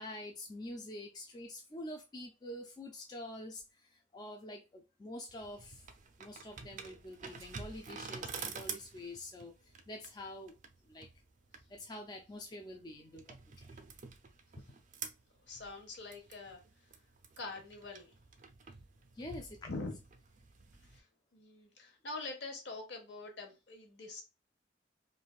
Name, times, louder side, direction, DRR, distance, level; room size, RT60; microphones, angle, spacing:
voice 1, 0.0-5.9 6.2-10.5 10.8-11.1 11.7-13.7 14.6-14.7 19.1-19.7, left 1 dB, 20° left, 0.3 m, -47 dB
sound 1, 5.3-21.0, right 5 dB, 40° right, 0.4 m, -49 dB
voice 2, 15.5-16.6 17.4-18.1 19.7-20.0 20.8-21.1 21.3-24.2, left 3 dB, 70° left, 0.9 m, -44 dB
3.2 x 2.4 x 2.3 m
head